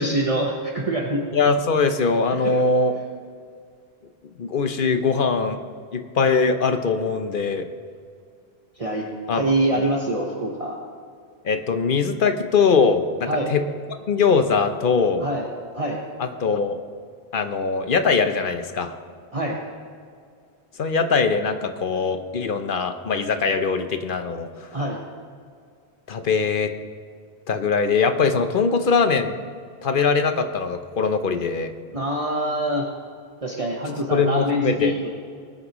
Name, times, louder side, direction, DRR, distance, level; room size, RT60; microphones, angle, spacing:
voice 1, 0.0-1.2 2.4-2.6 8.8-9.1 9.3-10.8 13.3-13.5 15.2-15.5 15.7-16.0 19.3-19.6 24.7-25.0 31.9-32.9 33.4-35.1, right 1 dB, 35° right, -2 dB, 1.1 m, -25 dB
voice 2, 1.3-2.9 4.4-5.6 5.9-7.7 9.3-9.4 9.7-9.8 11.4-13.6 14.1-15.3 16.2-16.8 17.3-18.9 20.8-24.7 26.1-26.7 27.5-29.4 29.8-31.7 33.9-34.9, left 5 dB, 55° left, 8 dB, 0.9 m, -21 dB
20.0 x 9.8 x 3.0 m, 2.2 s
omnidirectional pair, 1.1 m